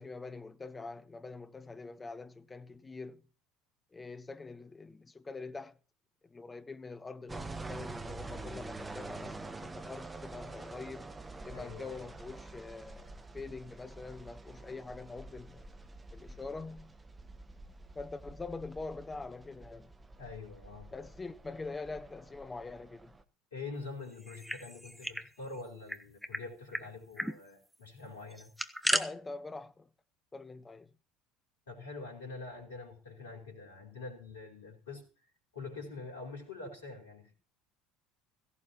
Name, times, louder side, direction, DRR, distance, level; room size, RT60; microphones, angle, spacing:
voice 1, 0.0-3.2 3.9-5.8 6.2-11.1 11.4-15.6 16.1-17.0 17.9-19.9 20.9-23.1 28.8-29.9 30.3-30.9, left 3 dB, 20° left, 1.2 m, -44 dB
sound 1, 7.3-23.2, right 3 dB, 15° right, 1.5 m, -47 dB
voice 2, 11.5-12.1 20.2-20.9 23.5-28.5 31.7-37.3, left 3 dB, 75° left, 4.6 m, -45 dB
sound 2, 24.2-25.3 25.5-25.6 25.9-26.4 26.7-26.8 27.2-27.4 28.3-29.0, equal, ahead, 1.3 m, -34 dB
16.5 x 16.5 x 3.1 m
figure-of-eight pair, 65°, 0 cm